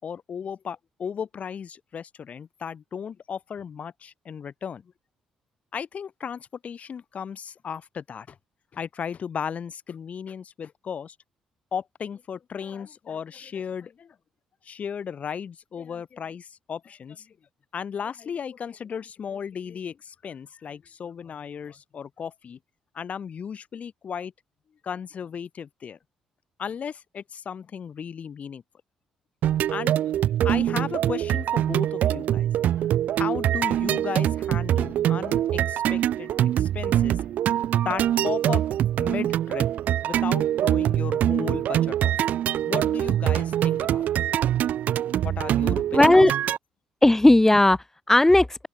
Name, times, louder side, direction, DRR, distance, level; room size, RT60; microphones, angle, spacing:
voice 1, 0.0-4.9 5.7-8.4 8.7-11.1 11.7-14.2 14.6-17.4 17.7-22.6 22.9-24.3 24.8-26.0 26.6-28.6 29.7-30.1 30.4-32.9 33.1-37.2 37.8-38.6 39.0-39.7 40.0-42.2 42.6-44.1 45.2-46.1, left 7 dB, 50° left, 4.7 m, -35 dB
sound 1, 29.4-46.6, right 11 dB, 60° right, 0.5 m, -24 dB
voice 2, 45.9-46.3 47.0-48.7, left 1 dB, 15° left, 1.3 m, -16 dB
open air
hypercardioid pair, 45°, 3 cm